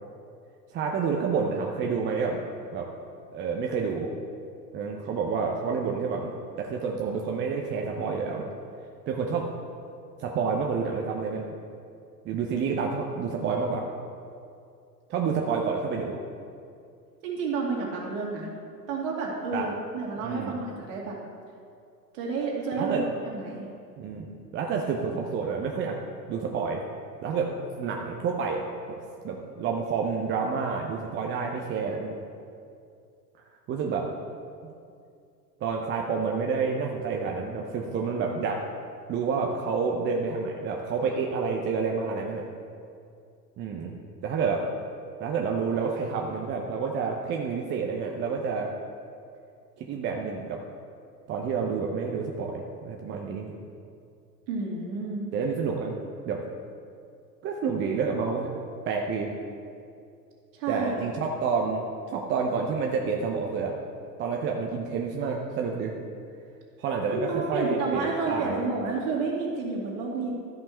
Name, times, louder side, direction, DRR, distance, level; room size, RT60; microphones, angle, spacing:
voice 1, 0.7-2.4 2.7-2.9 3.3-4.1 4.7-8.4 9.1-9.5 10.2-11.5 12.2-13.8 15.1-16.1 19.5-19.7 20.2-20.6 22.7-23.0 24.0-26.0 26.3-26.8 27.2-28.6 28.9-32.1 33.7-34.1 34.6-34.7 35.6-38.6 39.1-42.4 43.6-43.9 44.2-44.7 45.2-48.7 49.8-50.6 51.3-53.5 55.3-56.0 56.3-56.4 57.4-58.5 58.9-59.3 60.7-63.8 64.2-65.9 66.8-68.6, right 5 dB, 25° right, 1 dB, 0.7 m, -29 dB
voice 2, 17.2-18.5 18.9-21.2 22.1-23.7 54.5-55.3 60.6-60.9 67.1-70.3, right 4 dB, 50° right, -3 dB, 2.5 m, -30 dB
13.0 x 5.5 x 4.4 m, 2.4 s
figure-of-eight pair, 85°, 49 cm